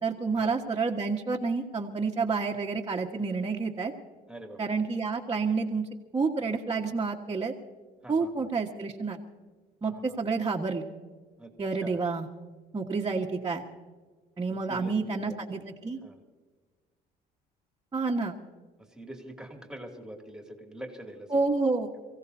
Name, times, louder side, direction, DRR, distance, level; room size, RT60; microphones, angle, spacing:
voice 1, 0.0-3.9 4.6-5.9 6.1-7.5 8.1-9.2 9.8-10.9 11.6-12.3 12.7-13.6 14.4-16.0 17.9-18.3 21.3-21.9, right 4 dB, 25° right, -2 dB, 1.5 m, -29 dB
voice 2, 4.3-4.8 8.0-8.5 9.9-10.2 11.4-11.5 11.8-12.0 14.5-14.9 15.2-15.6 16.0-16.2 18.8-21.5, right 1 dB, 5° right, 2 dB, 2.6 m, -45 dB
29.0 x 16.5 x 2.8 m, 1.4 s
cardioid pair, 110°, 17 cm